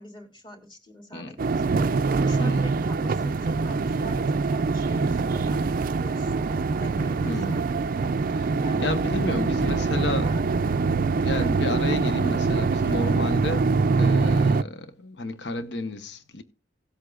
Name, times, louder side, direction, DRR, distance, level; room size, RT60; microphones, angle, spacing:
voice 1, 0.0-9.0 9.7-10.5 11.3-11.6, equal, 25° left, 2.6 m, -45 dB
sound 1, 1.4-14.6, right 4 dB, 50° right, 0.4 m, -24 dB
voice 2, 2.4-2.7 7.2-7.7 8.4-8.5 8.8-10.4 10.9-16.4, left 1 dB, 70° left, 1.1 m, -31 dB
18.0 x 8.0 x 2.4 m
head